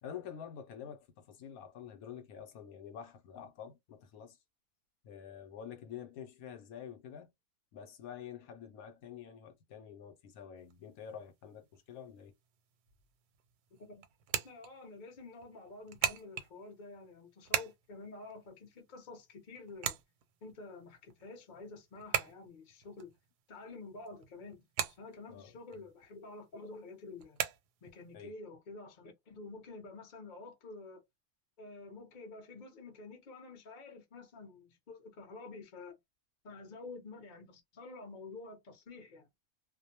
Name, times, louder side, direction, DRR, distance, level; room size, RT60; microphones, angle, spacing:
voice 1, 0.0-4.4 5.0-7.3 7.7-12.3 25.3-25.5 28.1-28.4, left 8 dB, 70° left, 1.0 m, -48 dB
sound 1, 10.6-28.1, right 9 dB, 85° right, 1.1 m, -42 dB
voice 2, 14.4-20.0 20.4-23.1 23.5-24.6 25.0-27.4 27.8-31.0 31.6-36.0 36.4-39.3, left 3 dB, 40° left, 0.7 m, -49 dB
2.5 x 2.1 x 2.7 m
omnidirectional pair, 1.6 m